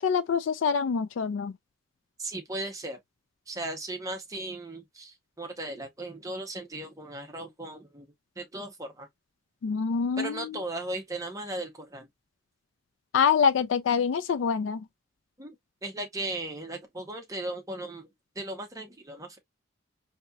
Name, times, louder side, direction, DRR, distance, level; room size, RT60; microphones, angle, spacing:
voice 1, 0.0-1.5 9.6-10.6 13.1-14.8, left 6 dB, 75° left, 0.4 m, -25 dB
voice 2, 2.2-3.0 3.5-8.1 8.4-9.1 10.2-12.1 15.4-15.5 15.8-18.1 18.4-19.4, right 2 dB, 15° right, 0.8 m, -37 dB
4.1 x 2.8 x 2.2 m
head